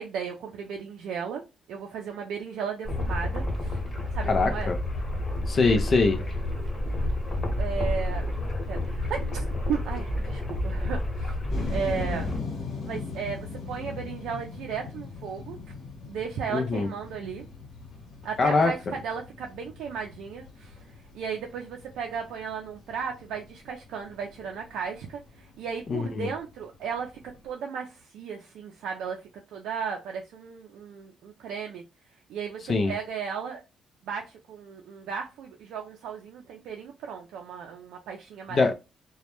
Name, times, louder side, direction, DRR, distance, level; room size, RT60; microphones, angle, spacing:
voice 1, 0.0-1.4 1.7-3.8 4.1-4.7 6.6-6.7 7.6-8.3 8.7-11.4 11.7-12.3 12.8-15.6 16.1-17.5 18.2-20.8 21.1-27.1 27.4-29.2 29.5-31.8 32.3-33.6 34.0-38.7, right 6 dB, 85° right, 0.4 m, -35 dB
sound 1, 2.8-12.4, left 1 dB, 30° left, 1.1 m, -30 dB
voice 2, 4.3-4.8 5.5-6.2 16.5-16.9 18.4-18.7 25.9-26.3 32.7-32.9 38.5-38.7, left 3 dB, 50° left, 0.4 m, -23 dB
sound 2, 11.5-27.5, left 4 dB, 70° left, 0.9 m, -41 dB
2.2 x 2.0 x 2.9 m
cardioid pair, 90°, 0 cm